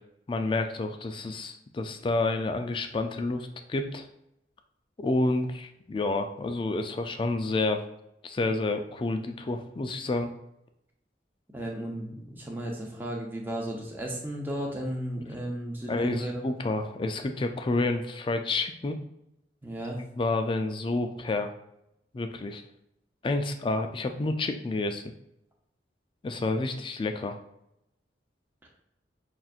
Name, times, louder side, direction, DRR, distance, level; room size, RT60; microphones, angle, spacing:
voice 1, 0.3-4.1 5.0-7.9 8.2-10.3 15.9-19.0 20.2-21.5 22.1-22.6 23.2-25.0 26.2-27.4, left 2 dB, 30° left, 6 dB, 0.3 m, -29 dB
voice 2, 11.5-16.4 19.6-20.0, right 1 dB, 10° right, -1 dB, 0.7 m, -34 dB
5.6 x 2.5 x 2.4 m, 0.81 s
head